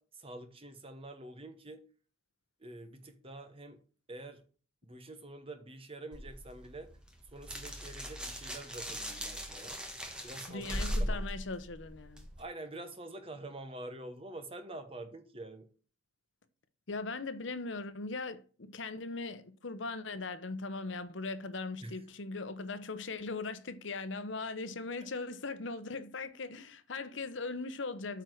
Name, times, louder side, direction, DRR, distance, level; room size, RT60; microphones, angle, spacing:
voice 1, 0.0-1.8 2.6-3.8 4.1-4.4 4.8-6.9 7.3-9.8 10.2-10.7 11.0-11.3 12.4-15.7 21.8-22.0, right 2 dB, 30° right, 1.2 m, -46 dB
sound 1, 6.1-12.4, equal, 5° right, 1.4 m, -39 dB
voice 2, 10.5-12.3 16.9-28.2, left 3 dB, 70° left, 0.9 m, -39 dB
8.8 x 4.5 x 6.4 m
head